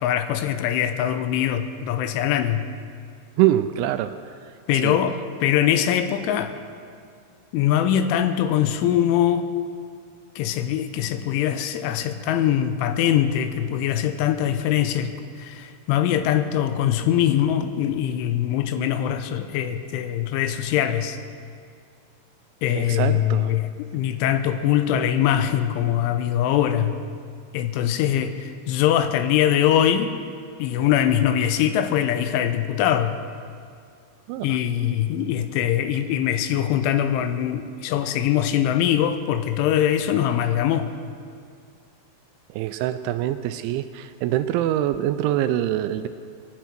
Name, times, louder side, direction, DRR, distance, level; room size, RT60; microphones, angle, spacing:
voice 1, 0.0-2.7 4.7-6.5 7.5-9.5 10.4-21.2 22.6-27.0 27.5-30.1 30.6-33.2 34.4-40.9, left 10 dB, 85° left, 10 dB, 3.1 m, -22 dB
voice 2, 3.4-4.2 4.7-5.0 22.8-23.5 34.3-34.6 42.5-46.1, right 13 dB, 85° right, 10 dB, 2.8 m, -24 dB
24.5 x 9.3 x 6.0 m, 2.2 s
omnidirectional pair, 5.7 m